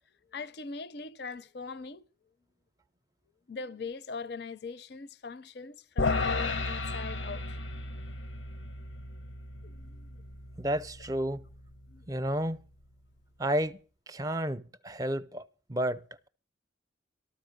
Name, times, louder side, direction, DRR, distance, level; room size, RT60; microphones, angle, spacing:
voice 1, 0.3-2.0 3.5-8.0 9.6-10.2 11.9-12.0, left 4 dB, 60° left, 0.6 m, -41 dB
sound 1, 6.0-12.4, left 3 dB, 90° left, 0.9 m, -35 dB
voice 2, 10.6-11.4 12.1-12.6 13.4-13.8 14.1-16.3, right 1 dB, 20° right, 0.6 m, -31 dB
13.5 x 13.0 x 5.3 m
head